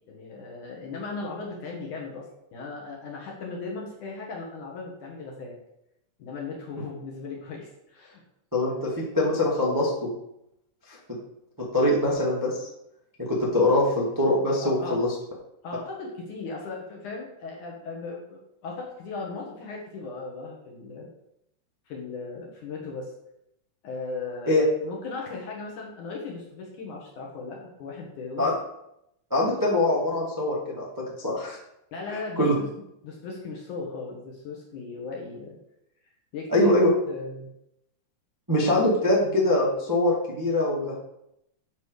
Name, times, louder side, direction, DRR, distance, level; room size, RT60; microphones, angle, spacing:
voice 1, 0.1-5.6 6.2-8.2 8.7-8.9 14.6-15.0 15.6-21.1 21.9-23.1 23.8-24.5 24.8-28.5 31.9-32.7 33.0-35.6 36.3-37.5, left 4 dB, 60° left, -2 dB, 2.3 m, -37 dB
voice 2, 8.5-10.1 11.7-12.7 13.2-15.1 24.5-24.6 28.4-28.5 29.3-31.6 32.1-32.5 36.5-36.9 38.5-40.9, left 1 dB, 30° right, -5 dB, 0.4 m, -23 dB
9.5 x 5.2 x 6.5 m, 0.81 s
omnidirectional pair, 5.2 m